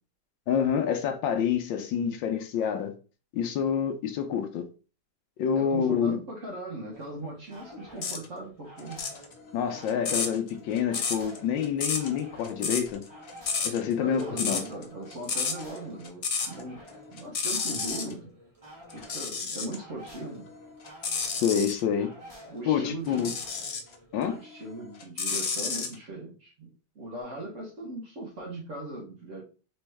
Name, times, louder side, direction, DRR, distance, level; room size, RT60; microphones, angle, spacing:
voice 1, 0.5-2.9 3.3-4.7 5.4-6.2 9.5-13.0 13.6-14.6 21.4-22.1 22.7-23.3 24.1-24.4, left 8 dB, 80° left, 1.4 m, -27 dB
voice 2, 5.5-9.1 13.9-16.8 17.1-18.3 18.9-20.5 22.5-23.4 24.2-29.4, right 1 dB, 45° right, 1.5 m, -39 dB
sound 1, 6.9-24.4, equal, 20° right, 1.3 m, -50 dB
sound 2, 8.0-8.2 8.8-16.6 16.9-18.1 18.9-19.8 20.3-21.8 23.1-23.9 24.4-25.9, left 5 dB, 60° left, 0.6 m, -31 dB
4.3 x 3.0 x 3.4 m
omnidirectional pair, 2.1 m